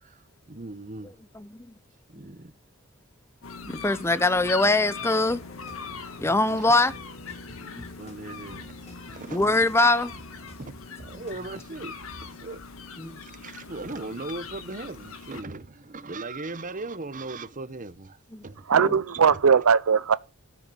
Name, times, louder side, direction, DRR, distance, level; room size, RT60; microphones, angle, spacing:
voice 1, 0.0-1.1 2.1-2.5 6.5-6.7 7.6-9.4 10.6-10.7 11.0-12.6 13.2-18.7 19.1-19.4, right 3 dB, 40° right, 1.0 m, -39 dB
voice 2, 1.3-1.7 2.2-2.3 3.7-5.4 6.2-6.9 9.3-10.1 13.0-13.2 18.3-18.4 18.8-18.9, left 2 dB, 10° left, 0.6 m, -23 dB
sound 1, 3.4-15.4, left 5 dB, 75° left, 1.7 m, -41 dB
sound 2, 5.0-11.6, equal, 30° left, 2.1 m, -49 dB
voice 3, 18.7-20.2, right 6 dB, 85° right, 0.6 m, -19 dB
13.5 x 6.8 x 6.3 m
head